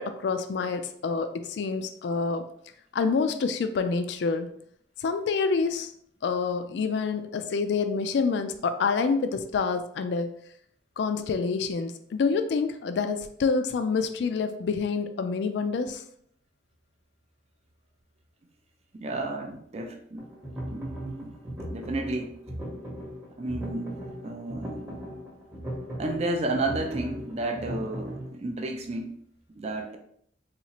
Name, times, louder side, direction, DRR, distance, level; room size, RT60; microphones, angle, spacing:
voice 1, 0.0-2.5 2.9-4.5 5.0-5.9 6.2-10.3 11.0-16.0, left 4 dB, 65° left, 9 dB, 0.3 m, -27 dB
voice 2, 18.9-20.3 20.7-21.4 21.7-22.3 23.4-23.9 24.2-24.8 26.0-29.1 29.6-30.0, right 2 dB, 35° right, 3 dB, 0.4 m, -32 dB
sound 1, 20.2-28.3, equal, 10° right, 0.9 m, -38 dB
4.1 x 2.4 x 2.9 m, 0.67 s
head